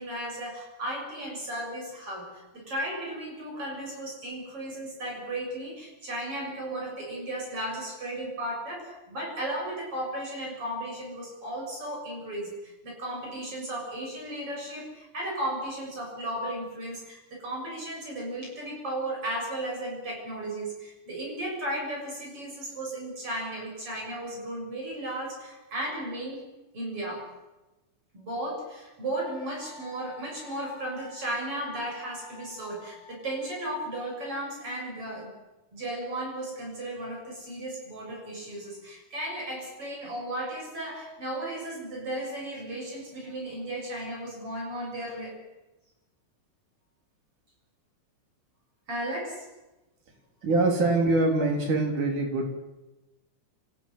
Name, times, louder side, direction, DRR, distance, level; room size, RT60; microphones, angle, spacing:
voice 1, 0.0-26.4 26.7-27.3 28.1-35.4 35.7-45.4 48.9-49.4, right 1 dB, 45° right, -1 dB, 8.2 m, -35 dB
Wind instrument woodwind instrument, 29.2-34.2, left 3 dB, 90° left, 3.3 m, -50 dB
voice 2, 50.4-52.6, right 2 dB, 90° right, 3 dB, 5.1 m, -24 dB
27.0 x 15.5 x 7.9 m, 1.0 s
omnidirectional pair, 3.5 m